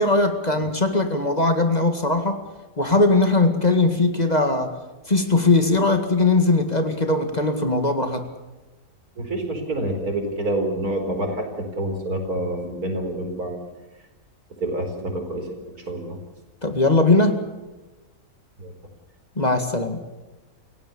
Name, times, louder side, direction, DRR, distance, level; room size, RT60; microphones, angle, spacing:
voice 1, 0.0-2.4 2.8-4.8 5.1-8.3 16.6-17.5 19.4-20.0, left 2 dB, 30° left, 6 dB, 2.0 m, -20 dB
voice 2, 9.2-13.6 14.6-16.2 18.6-18.7, right 1 dB, 85° right, 4 dB, 5.1 m, -27 dB
28.0 x 17.0 x 7.0 m, 1.2 s
omnidirectional pair, 1.5 m